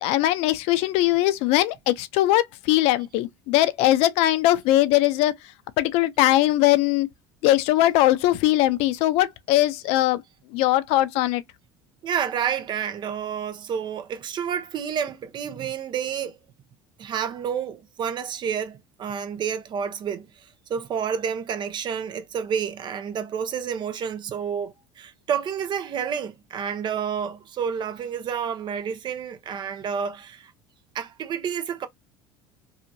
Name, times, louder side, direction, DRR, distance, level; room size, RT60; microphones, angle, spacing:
voice 1, 0.0-5.3 5.8-7.1 7.4-10.2 10.5-11.4, left 15 dB, 65° left, 0.4 m, -20 dB
voice 2, 12.0-16.4 17.0-20.3 20.7-30.5 30.9-31.9, right 7 dB, 40° right, 0.6 m, -29 dB
2.8 x 2.4 x 2.5 m
supercardioid pair, 90°, 11 cm